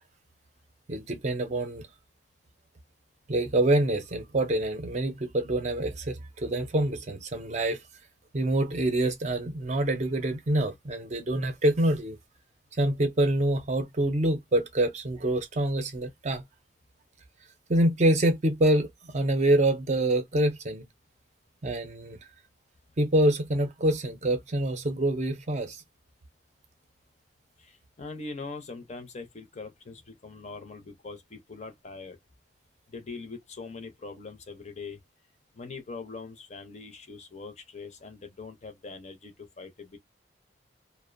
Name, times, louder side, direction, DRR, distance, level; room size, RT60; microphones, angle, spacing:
voice 1, 0.9-1.8 3.3-7.8 8.3-12.2 12.8-16.4 17.7-18.9 19.1-20.8 21.6-22.2 23.0-25.8, right 1 dB, 40° right, 0.6 m, -26 dB
voice 2, 27.6-32.2 32.9-35.0 35.5-40.0, left 4 dB, 40° left, 0.6 m, -42 dB
2.5 x 2.1 x 2.4 m
head